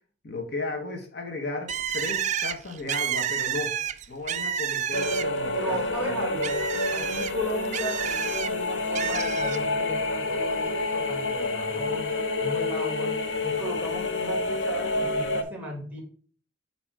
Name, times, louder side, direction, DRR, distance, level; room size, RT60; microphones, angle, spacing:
voice 1, 0.2-3.8 4.1-6.2, left 3 dB, 60° left, 3 dB, 1.2 m, -35 dB
Bird, 1.7-5.5 5.9-8.5 8.9-9.6, right 9 dB, 40° right, 0.3 m, -30 dB
sound 1, 4.9-15.4, left 2 dB, 80° left, 0.8 m, -28 dB
voice 2, 5.5-6.6 6.9-12.1 12.4-13.2 13.4-16.0, equal, 10° right, 1 dB, 2.0 m, -35 dB
7.5 x 3.0 x 4.6 m, 0.43 s
head